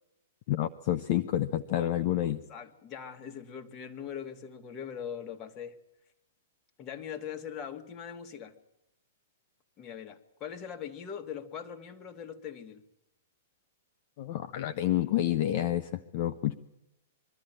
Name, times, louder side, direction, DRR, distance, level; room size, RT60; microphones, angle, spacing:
voice 1, 0.5-2.4 14.2-16.6, left 13 dB, 50° left, 12 dB, 0.7 m, -29 dB
voice 2, 2.2-5.8 6.8-8.5 9.8-12.8, left 8 dB, 30° left, 6 dB, 1.8 m, -41 dB
22.5 x 13.5 x 8.9 m, 0.90 s
figure-of-eight pair, 110°, 0 cm